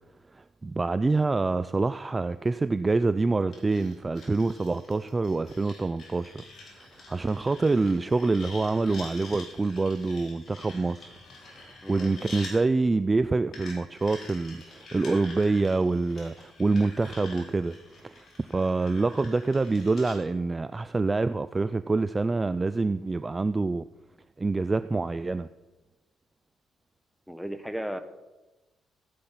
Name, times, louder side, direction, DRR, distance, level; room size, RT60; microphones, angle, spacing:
voice 1, 0.3-6.4 6.8-11.1 11.5-17.8 18.0-23.8 24.4-25.5, right 3 dB, 25° right, 13 dB, 0.4 m, -26 dB
sound 1, 3.5-12.5 13.5-20.2, left 3 dB, 60° left, 4.7 m, -47 dB
voice 2, 11.8-12.1 27.3-28.0, equal, ahead, 9 dB, 1.2 m, -35 dB
15.5 x 8.6 x 5.7 m, 1.1 s
cardioid pair, 90°, 0 cm